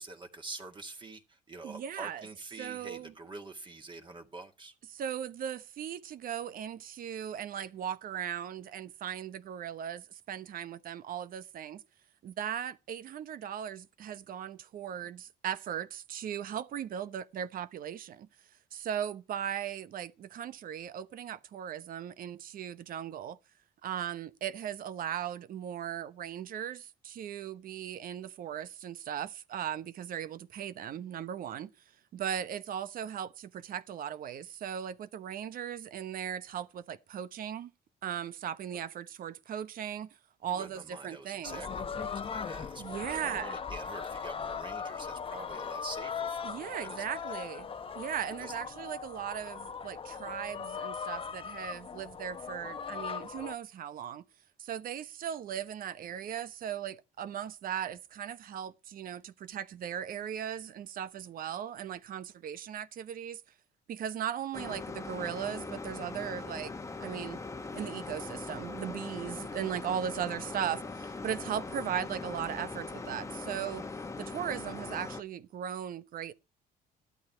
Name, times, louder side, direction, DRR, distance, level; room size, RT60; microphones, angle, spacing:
voice 1, 0.0-4.8 38.7-38.8 40.4-47.4 48.4-48.5, right 3 dB, 30° right, 2.0 m, -46 dB
voice 2, 1.6-2.2 2.6-3.1 4.9-11.8 12.2-18.3 18.7-23.4 23.8-31.7 32.1-37.7 38.0-41.6 42.8-43.6 46.4-54.2 54.6-63.4 63.9-66.7 67.0-67.4 67.7-73.8 74.2-76.3, right 9 dB, 55° right, 1.0 m, -38 dB
sound 1, 41.4-53.5, left 6 dB, 30° left, 0.9 m, -39 dB
sound 2, 64.5-75.2, left 3 dB, 15° left, 1.2 m, -41 dB
14.0 x 12.0 x 4.5 m
cardioid pair, 110°, 17 cm